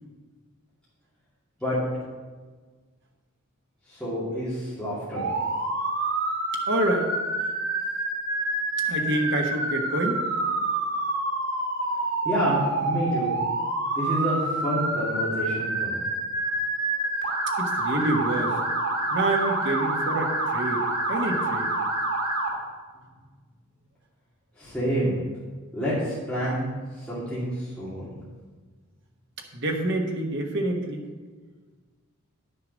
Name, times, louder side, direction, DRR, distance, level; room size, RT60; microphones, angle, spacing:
voice 1, 3.9-5.3 12.2-13.3 13.9-16.0 24.6-25.2 25.7-28.2, equal, 5° left, -10 dB, 2.3 m, -28 dB
Motor vehicle (road) / Siren, 5.2-22.5, right 2 dB, 90° right, 3.3 m, -27 dB
voice 2, 6.7-7.1 7.4-7.5 8.8-10.2 17.6-18.6 19.1-21.7 29.5-31.0, right 1 dB, 55° right, 2 dB, 1.3 m, -27 dB
10.0 x 6.8 x 5.2 m, 1.4 s
head